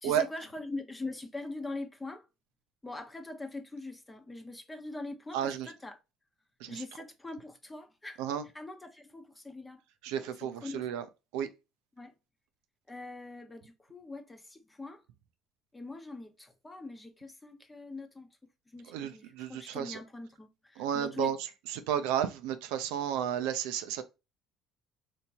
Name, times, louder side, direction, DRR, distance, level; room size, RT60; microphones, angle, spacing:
voice 1, 0.0-2.3 2.8-6.0 6.7-9.8 10.2-11.0 12.0-12.1 12.9-15.0 15.7-18.4 18.7-21.3, left 2 dB, 15° left, 0.9 m, -42 dB
voice 2, 5.3-5.7 6.6-6.8 8.2-8.4 10.0-11.0 11.3-11.5 18.9-20.0 20.8-21.4 21.9-24.0, right 10 dB, 80° right, 0.5 m, -32 dB
3.5 x 2.8 x 2.9 m
supercardioid pair, 75°, 0 cm